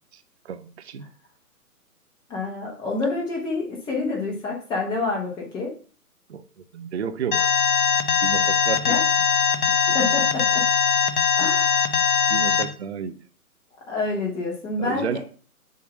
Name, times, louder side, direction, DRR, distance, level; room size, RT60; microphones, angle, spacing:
voice 1, 0.4-1.0 6.3-6.4 6.7-7.5 8.2-8.9 9.7-10.0 12.3-13.2 14.8-15.2, right 7 dB, 45° right, 0.7 m, -31 dB
voice 2, 2.3-5.7 8.9-9.0 9.9-10.7 11.4-12.1 13.9-15.2, left 3 dB, 10° left, 1.1 m, -28 dB
Alarm, 7.3-12.6, left 7 dB, 35° left, 0.6 m, -20 dB
7.3 x 2.9 x 5.9 m
figure-of-eight pair, 135°, 46 cm